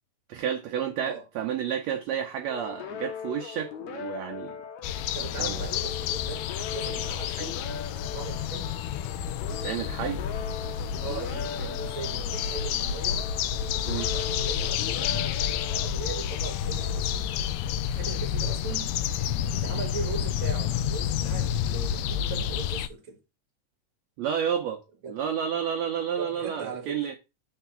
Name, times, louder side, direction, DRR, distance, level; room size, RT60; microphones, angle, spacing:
voice 1, 0.3-4.6 4.9-5.6 9.6-10.2 13.8-14.1 24.2-24.8 25.1-27.2, right 8 dB, 75° right, 1.7 m, -31 dB
sound 1, 2.5-17.8, left 7 dB, 70° left, 2.2 m, -40 dB
sound 2, 4.8-22.9, left 9 dB, 90° left, 1.5 m, -29 dB
voice 2, 5.1-7.6 7.9-8.7 11.0-13.2 13.6-17.3 17.8-18.9 19.5-23.2 25.0-25.2 26.2-27.0, right 4 dB, 50° right, 1.7 m, -39 dB
4.8 x 4.6 x 5.8 m
omnidirectional pair, 3.7 m